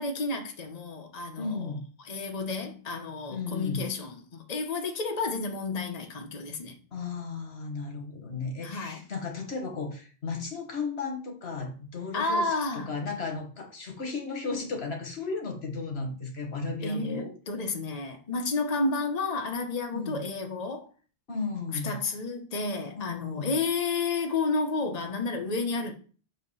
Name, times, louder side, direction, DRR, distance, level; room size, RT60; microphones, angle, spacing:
voice 1, 0.0-1.7 2.0-6.8 8.6-9.0 12.1-12.9 16.8-20.9 21.8-25.9, left 3 dB, 40° left, 1.1 m, -31 dB
voice 2, 1.4-1.9 3.3-3.9 6.9-12.5 12.9-17.3 19.9-20.2 21.3-22.0 23.0-23.5, left 4 dB, 85° left, 1.7 m, -34 dB
7.4 x 2.9 x 5.5 m
omnidirectional pair, 1.0 m